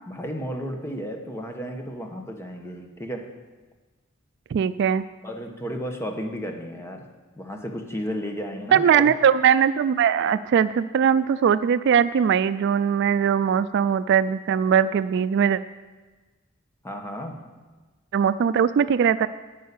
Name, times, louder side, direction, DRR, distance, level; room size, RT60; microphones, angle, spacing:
voice 1, 0.1-3.3 5.2-7.1 7.4-9.1 16.8-17.5, equal, 15° left, 3 dB, 1.1 m, -33 dB
voice 2, 4.5-5.0 8.7-15.6 18.1-19.3, right 7 dB, 60° right, 15 dB, 0.3 m, -20 dB
11.0 x 5.5 x 8.5 m, 1.3 s
head